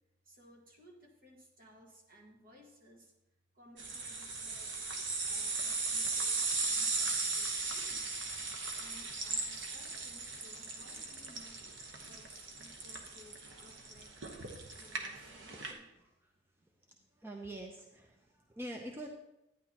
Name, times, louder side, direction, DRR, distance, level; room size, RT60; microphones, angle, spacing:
voice 1, 0.3-3.1 3.5-4.7 5.2-8.2 8.7-11.6 12.1-15.9, equal, 50° right, 0 dB, 1.8 m, -59 dB
sound 1, 3.8-15.7, right 3 dB, 80° right, 1.2 m, -37 dB
voice 2, 17.2-19.1, right 1 dB, 15° right, 2 dB, 0.6 m, -45 dB
11.5 x 9.5 x 2.9 m, 0.90 s
head